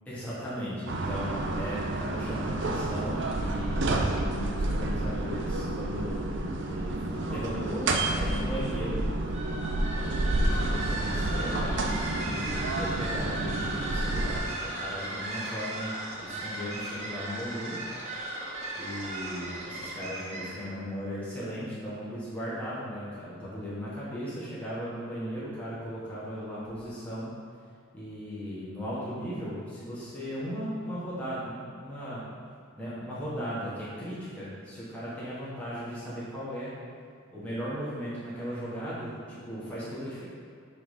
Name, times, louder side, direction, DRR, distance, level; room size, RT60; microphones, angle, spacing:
voice 1, 0.0-9.0 9.9-17.8 18.8-27.3 27.9-32.2 32.8-36.7 37.3-40.2, equal, 5° left, -10 dB, 1.3 m, -37 dB
sound 1, 0.9-14.4, right 2 dB, 60° right, 0.5 m, -30 dB
sound 2, 9.3-20.7, right 1 dB, 30° right, 0.9 m, -36 dB
5.8 x 3.9 x 4.9 m, 2.2 s
head